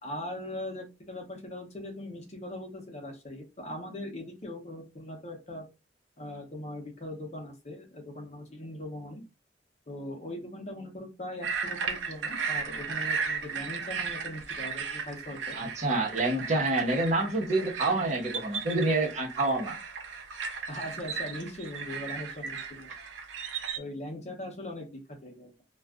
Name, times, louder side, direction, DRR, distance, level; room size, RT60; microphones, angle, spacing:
voice 1, 0.0-5.6 6.2-9.2 9.9-15.6 16.3-16.5 20.7-22.9 23.8-25.5, left 1 dB, 40° left, 0.8 m, -40 dB
Hydrophone Newport Wetlands Helicopter Pontoon Movement, 11.4-23.8, right 5 dB, 80° right, 0.6 m, -36 dB
voice 2, 15.5-19.8, right 2 dB, 40° right, 1.0 m, -27 dB
2.4 x 2.4 x 3.4 m
head